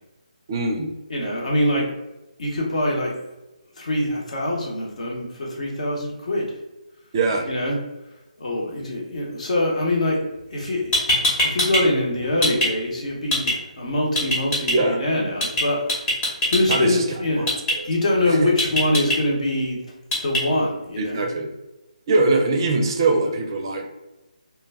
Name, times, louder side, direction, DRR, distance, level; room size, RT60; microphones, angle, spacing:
voice 1, 0.5-0.9 7.1-7.5 14.7-15.0 16.7-17.0 17.4-17.9 18.3-18.5 21.0-21.5 22.1-23.9, right 3 dB, 35° right, 3 dB, 0.4 m, -22 dB
voice 2, 1.1-1.9 2.4-3.2 3.8-6.6 7.5-7.8 8.4-10.2 10.5-15.9 16.5-17.5 17.8-19.8 20.2-21.3, left 1 dB, 60° left, -1 dB, 0.9 m, -24 dB
sound 1, 10.6-10.7 10.9-11.8 12.1-12.7 13.3-13.5 14.2-14.7 15.4-15.6 15.9-16.8 17.5-17.7 18.6-19.2 20.1-20.4, left 1 dB, 15° left, 0.8 m, -21 dB
2.2 x 2.1 x 3.3 m, 1.0 s
figure-of-eight pair, 155°, 4 cm